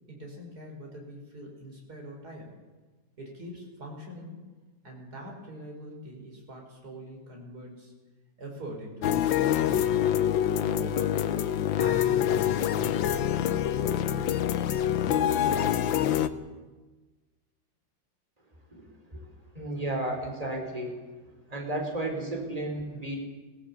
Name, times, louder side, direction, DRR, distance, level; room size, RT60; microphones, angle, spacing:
voice 1, 0.1-2.5 3.2-4.4 4.8-7.9 8.4-9.8 10.6-11.3 11.8-16.0, equal, 50° right, 0 dB, 5.5 m, -44 dB
sound 1, 9.0-16.3, left 10 dB, 80° left, 1.6 m, -26 dB
voice 2, 19.5-20.9 21.5-23.2, right 1 dB, 20° right, 1 dB, 4.4 m, -33 dB
22.0 x 16.5 x 8.5 m, 1.3 s
omnidirectional pair, 2.1 m